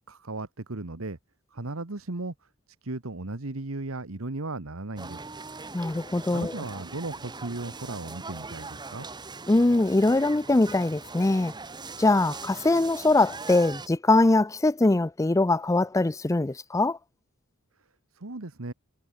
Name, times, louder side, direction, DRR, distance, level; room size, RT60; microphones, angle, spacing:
voice 1, 0.1-1.2 1.5-2.3 2.8-5.2 6.3-9.1 18.1-18.7, right 2 dB, 75° right, 1.4 m, -36 dB
sound 1, 5.0-13.9, right 3 dB, 20° right, 1.4 m, -41 dB
voice 2, 5.7-6.6 9.5-11.5 12.0-17.0, left 2 dB, 15° left, 0.5 m, -22 dB
head